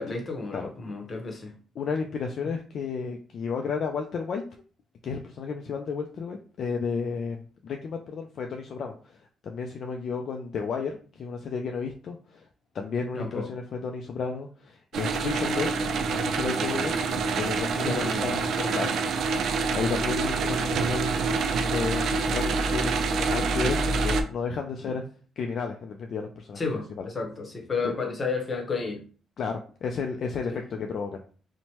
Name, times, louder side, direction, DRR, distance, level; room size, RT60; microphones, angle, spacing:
voice 1, 0.0-1.5 13.1-13.5 17.8-18.9 24.8-25.0 26.6-29.0 30.5-30.6, left 4 dB, 35° left, 0.8 m, -32 dB
voice 2, 1.8-4.4 5.0-12.5 12.7-17.0 17.4-18.4 18.7-18.9 19.7-25.0 25.4-26.6 27.0-27.1 27.8-27.9 29.4-31.2, left 5 dB, 60° left, 0.3 m, -32 dB
sound 1, 14.9-24.2, right 4 dB, 70° right, 0.3 m, -26 dB
3.0 x 2.1 x 2.8 m
cardioid pair, 90°, 0 cm